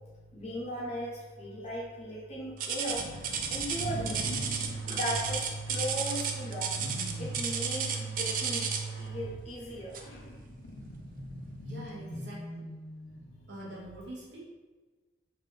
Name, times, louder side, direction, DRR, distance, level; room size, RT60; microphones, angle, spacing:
voice 1, 0.3-4.4 4.9-8.7 9.0-10.3, equal, 35° left, -6 dB, 0.5 m, -38 dB
sound 1, 2.6-9.0 9.9-10.2 10.7-10.9 11.5-11.6, right 6 dB, 45° right, 0.3 m, -33 dB
sound 2, 2.7-4.9 6.7-7.5 10.0-13.5, left 1 dB, 85° left, 0.5 m, -43 dB
sound 3, 3.7-9.8, right 4 dB, 20° right, 0.8 m, -39 dB
voice 2, 11.6-12.7 13.5-14.5, right 1 dB, 70° right, -6 dB, 0.9 m, -44 dB
3.3 x 2.5 x 3.6 m, 1.3 s
head